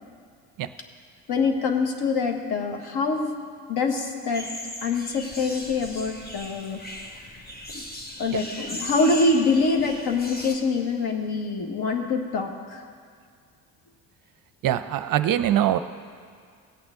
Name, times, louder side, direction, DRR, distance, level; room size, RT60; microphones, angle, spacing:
voice 1, 1.3-3.3 3.7-4.5 4.8-6.8 7.7-7.8 8.2-12.8, left 3 dB, 55° left, 3 dB, 1.5 m, -25 dB
sound 1, 4.3-10.6, left 1 dB, 20° left, 1.3 m, -38 dB
voice 2, 14.6-15.8, right 11 dB, 50° right, 12 dB, 0.6 m, -23 dB
16.0 x 8.7 x 3.8 m, 2.1 s
hypercardioid pair, 60°, 45 cm